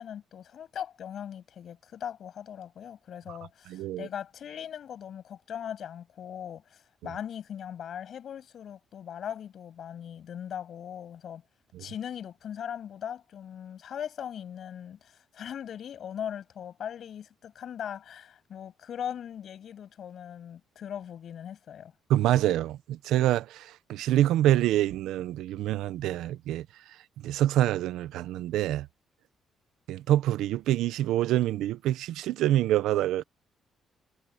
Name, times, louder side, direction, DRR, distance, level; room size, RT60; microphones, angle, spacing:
voice 1, 0.0-11.4 11.8-21.9, left 9 dB, 65° left, 7.9 m, -39 dB
voice 2, 3.7-4.1 11.7-11.8 22.1-26.7 27.2-28.9 29.9-33.2, right 13 dB, 90° right, 0.7 m, -26 dB
cardioid pair, 90°, 0 cm